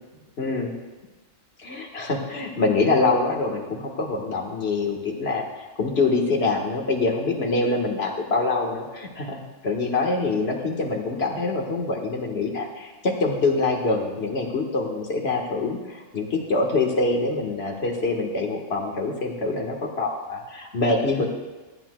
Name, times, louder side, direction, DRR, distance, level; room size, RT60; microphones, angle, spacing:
voice 1, 0.4-0.7 1.6-5.4 5.8-21.3, left 3 dB, 55° left, 0 dB, 1.8 m, -25 dB
25.5 x 8.8 x 2.3 m, 1.2 s
omnidirectional pair, 1.3 m